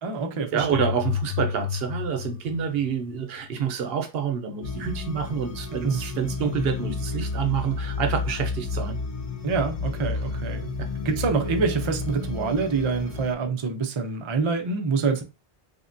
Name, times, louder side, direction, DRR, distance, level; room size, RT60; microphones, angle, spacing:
voice 1, 0.0-0.9 5.7-6.0 9.4-10.6 11.0-15.2, right 4 dB, 45° right, 0.4 m, -26 dB
voice 2, 0.5-9.0 10.3-10.4 10.8-10.9, right 7 dB, 75° right, 0.8 m, -28 dB
sound 1, 0.6-3.5, left 9 dB, 90° left, 1.0 m, -31 dB
sound 2, 4.6-13.3, left 4 dB, 50° left, 0.5 m, -31 dB
3.5 x 2.1 x 2.5 m
omnidirectional pair, 1.0 m